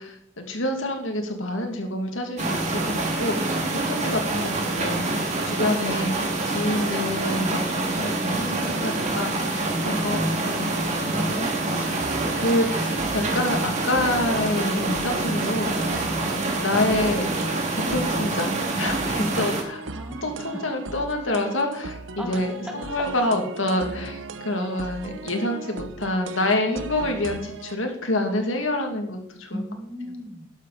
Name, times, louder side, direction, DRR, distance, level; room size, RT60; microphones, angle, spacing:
voice 1, 0.0-12.0 12.4-16.0 16.6-17.3 17.7-19.8 20.2-29.6, left 1 dB, 85° left, 3 dB, 2.4 m, -27 dB
sound 1, 2.4-19.6, right 2 dB, 35° right, 2.4 m, -26 dB
sound 2, 12.0-27.7, right 4 dB, 80° right, 0.8 m, -38 dB
voice 2, 19.8-20.5 22.2-22.5 29.5-30.5, left 1 dB, 5° right, 3 dB, 1.7 m, -38 dB
12.5 x 11.5 x 4.1 m, 0.69 s
head